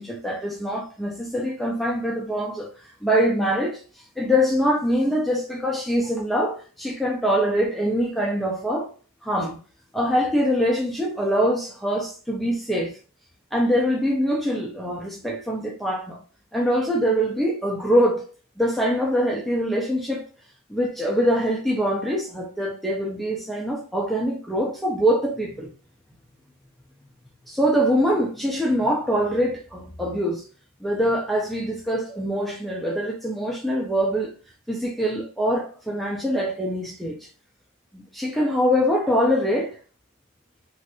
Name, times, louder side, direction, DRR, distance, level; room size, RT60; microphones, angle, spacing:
voice 1, 0.0-3.8 4.2-8.9 9.2-9.6 9.9-12.9 13.5-16.2 16.5-18.2 18.6-20.2 20.7-25.7 27.5-30.4 30.8-34.3 34.7-37.3 37.9-39.8, equal, ahead, 0.4 m, -24 dB
3.1 x 2.5 x 2.8 m
head